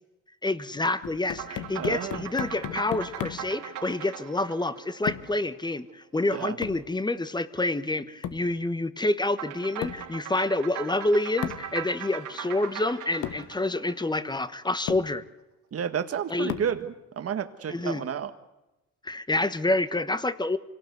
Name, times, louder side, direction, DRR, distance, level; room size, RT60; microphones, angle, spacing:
voice 1, 0.4-15.2 16.3-16.5 17.7-18.0 19.0-20.6, left 2 dB, 15° left, 13 dB, 1.2 m, -28 dB
sound 1, 1.0-3.6 5.1-5.4 6.6-6.9 8.2-8.5 9.8-10.1 11.4-11.7 12.7-12.8 13.2-13.5 14.4-14.5 14.9-15.1 16.5-16.8, left 10 dB, 80° left, 1.3 m, -35 dB
sound 2, 1.3-5.9 9.3-14.7, right 10 dB, 85° right, 3.5 m, -40 dB
voice 2, 1.8-2.2 6.3-6.6 15.7-18.3, right 8 dB, 50° right, 8 dB, 1.6 m, -31 dB
25.5 x 18.0 x 8.1 m, 1.0 s
cardioid pair, 90°, 30 cm